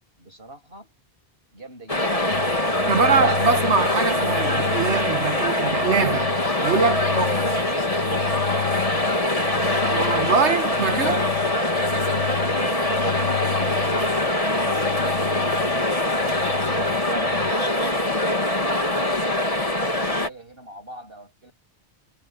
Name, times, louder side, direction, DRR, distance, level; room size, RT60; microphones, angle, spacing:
voice 1, 0.2-0.9 1.5-2.3 7.7-9.5 18.3-21.5, right 2 dB, 60° right, 7.0 m, -44 dB
sound 1, 1.9-20.3, left 1 dB, 30° left, 2.7 m, -23 dB
sound 2, 2.3-17.5, left 11 dB, 80° left, 1.6 m, -34 dB
voice 2, 2.9-7.5 9.9-11.3, right 5 dB, 85° right, 1.8 m, -23 dB
omnidirectional pair, 1.1 m